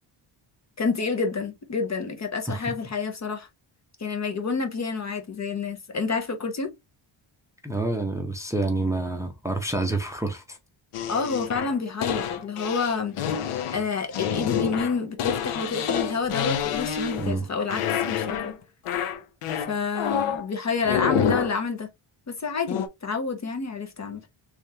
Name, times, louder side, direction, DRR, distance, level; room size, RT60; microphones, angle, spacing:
voice 1, 0.8-3.5 4.0-6.7 11.1-13.2 13.7-18.5 19.7-21.9 22.3-24.2, left 5 dB, 35° left, 0.7 m, -28 dB
voice 2, 7.6-10.6 17.2-17.5, right 2 dB, 5° right, 0.6 m, -28 dB
sound 1, 10.9-17.4 17.7-18.6 18.9-20.4 20.8-21.6 22.7-22.9, left 8 dB, 85° left, 0.8 m, -28 dB
3.5 x 3.4 x 2.7 m
wide cardioid pair, 155°, 49 cm